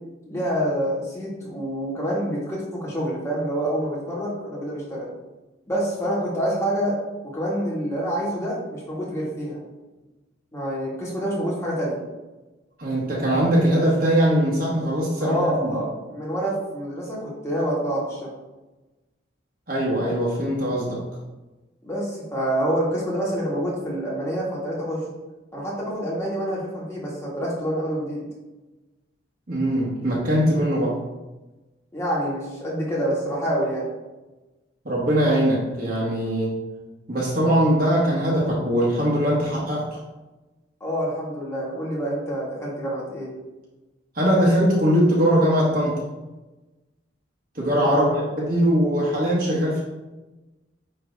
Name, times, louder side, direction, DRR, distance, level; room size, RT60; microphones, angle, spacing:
voice 1, 0.3-5.1 5.7-7.0 7.2-9.6 10.5-12.0 15.2-18.3 21.8-25.0 25.5-28.2 31.9-33.9 40.8-43.3 47.9-48.3, equal, 15° left, -6 dB, 1.9 m, -27 dB
voice 2, 12.8-15.8 19.7-21.0 29.5-31.0 34.8-36.6 37.1-40.0 44.1-46.0 47.5-48.0 48.4-49.8, equal, 50° right, -5 dB, 1.4 m, -21 dB
8.9 x 3.2 x 3.6 m, 1.1 s
head